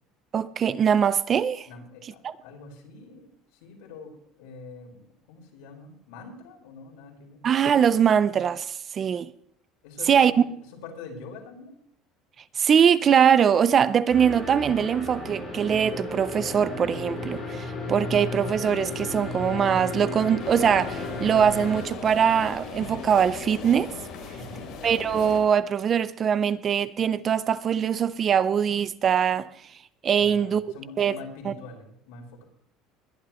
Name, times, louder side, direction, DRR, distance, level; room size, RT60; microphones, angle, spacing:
voice 1, 0.3-1.7 7.4-9.3 10.1-10.3 12.6-23.9 24.8-29.5 30.0-30.6 31.0-31.2 31.5-31.6, right 8 dB, 25° right, 0.4 m, -22 dB
voice 2, 1.6-5.0 5.3-7.4 9.8-10.5 10.8-11.7 24.3-24.7 30.1-32.4, left 3 dB, 85° left, 4.9 m, -44 dB
sound 1, 14.1-21.8, left 2 dB, 10° left, 6.0 m, -34 dB
sound 2, 20.4-25.4, left 5 dB, 45° left, 3.7 m, -38 dB
21.0 x 11.0 x 3.1 m
cardioid pair, 175°, 0 cm